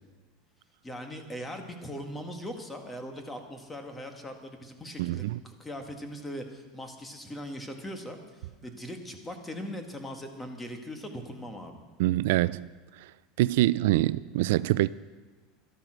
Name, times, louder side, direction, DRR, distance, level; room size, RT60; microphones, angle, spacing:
voice 1, 0.8-11.8, equal, 10° left, 1.8 m, -40 dB
voice 2, 5.0-5.4 12.0-12.7 13.4-14.9, right 16 dB, 75° right, 0.3 m, -25 dB
13.0 x 12.0 x 6.3 m
supercardioid pair, 125°, 0 cm